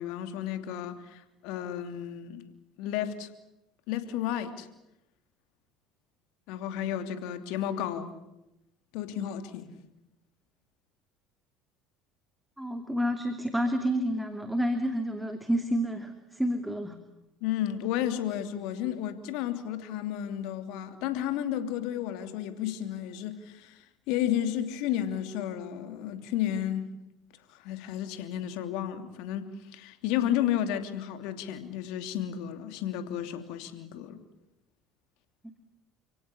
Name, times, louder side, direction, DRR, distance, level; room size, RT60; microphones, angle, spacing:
voice 1, 0.0-2.4 2.8-3.3 3.9-4.7 6.5-8.1 8.9-9.7 17.4-26.9 27.5-34.2, left 11 dB, 65° left, 8 dB, 2.9 m, -32 dB
voice 2, 12.6-17.0, equal, 5° right, 7 dB, 2.6 m, -29 dB
30.0 x 17.5 x 10.0 m, 0.92 s
hypercardioid pair, 65°, 0 cm